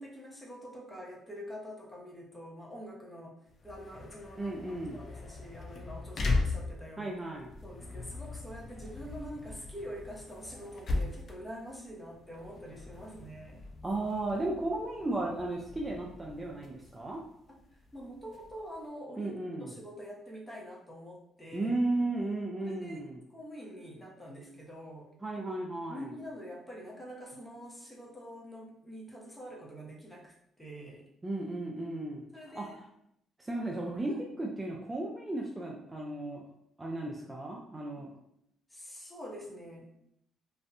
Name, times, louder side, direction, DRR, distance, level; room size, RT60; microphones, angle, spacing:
voice 1, 0.0-3.3 3.6-7.1 7.6-13.7 17.5-17.6 17.9-19.3 19.6-21.7 22.6-23.0 23.3-25.1 25.4-25.5 25.9-31.1 32.3-32.7 34.1-34.3 38.0-38.1 38.7-39.9, equal, 10° left, -3 dB, 0.8 m, -45 dB
sound 1, 3.5-18.9, left 3 dB, 55° left, 0.4 m, -39 dB
voice 2, 4.4-5.0 7.0-7.5 13.8-17.2 19.2-19.7 21.5-23.2 25.2-26.2 31.2-32.2 32.5-32.9 33.4-34.1 34.4-36.4 36.8-38.1, right 2 dB, 20° right, -2 dB, 0.4 m, -35 dB
2.6 x 2.1 x 2.5 m, 0.75 s
supercardioid pair, 60°, 0 cm